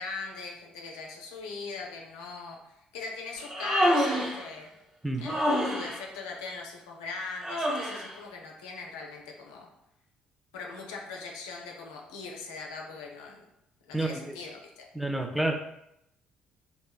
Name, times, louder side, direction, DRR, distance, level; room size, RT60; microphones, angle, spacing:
voice 1, 0.0-4.7 5.2-9.7 10.5-13.4 13.9-14.8, left 4 dB, 80° left, 0 dB, 0.4 m, -40 dB
Human voice, 3.4-4.4 5.2-6.0 7.4-8.1, equal, 30° right, 1.1 m, -27 dB
voice 2, 13.9-14.4 14.9-15.5, right 2 dB, 5° right, 4 dB, 0.4 m, -29 dB
3.0 x 2.1 x 2.2 m, 0.81 s
hypercardioid pair, 50°, 3 cm